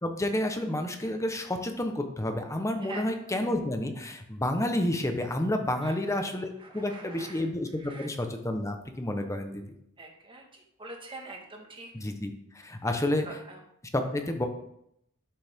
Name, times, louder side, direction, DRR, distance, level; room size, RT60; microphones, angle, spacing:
voice 1, 0.0-9.6 11.9-12.3 12.6-13.3 13.9-14.5, left 1 dB, 15° left, 5 dB, 1.0 m, -30 dB
voice 2, 6.6-7.4 7.8-8.1 10.0-11.9 13.2-13.6, right 2 dB, 25° right, 1 dB, 1.7 m, -44 dB
12.0 x 6.4 x 3.7 m, 0.75 s
head